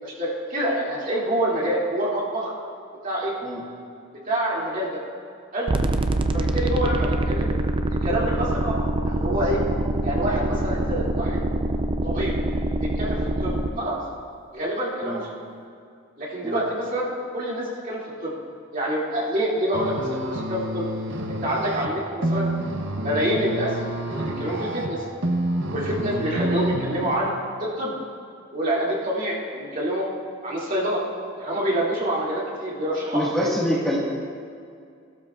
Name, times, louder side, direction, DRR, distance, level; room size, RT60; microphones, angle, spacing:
voice 1, 0.0-2.5 3.0-3.3 4.3-5.0 5.5-5.7 6.3-7.5 8.0-8.8 9.0-9.6 10.0-11.4 12.0-12.3 12.8-14.0 14.5-15.3 16.2-18.4 18.7-20.9 21.3-22.5 23.0-23.8 24.1-25.0 25.7-27.3 27.6-27.9 28.5-30.1 30.4-31.0 31.4-33.5, right 1 dB, 40° right, -6 dB, 2.4 m, -26 dB
sound 1, 5.7-13.7, right 2 dB, 25° right, 0.4 m, -24 dB
sound 2, 19.7-27.2, right 1 dB, 60° right, 0.8 m, -28 dB
voice 2, 33.1-34.0, equal, 5° left, -7 dB, 1.5 m, -26 dB
17.0 x 12.5 x 2.4 m, 2.3 s
head